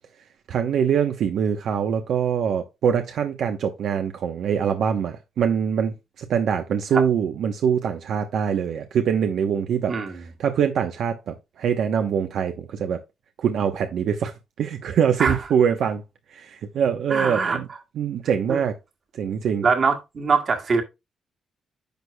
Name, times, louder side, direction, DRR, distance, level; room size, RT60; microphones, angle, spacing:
voice 1, 0.5-13.0 13.4-16.0 16.3-17.7 18.0-18.7 19.1-19.7, right 7 dB, 70° right, 0.9 m, -24 dB
voice 2, 9.9-10.2 15.2-15.4 17.1-17.6 18.5-18.6 19.6-20.8, right 5 dB, 45° right, 1.8 m, -22 dB
10.5 x 6.3 x 2.3 m
cardioid pair, 125°, 0 cm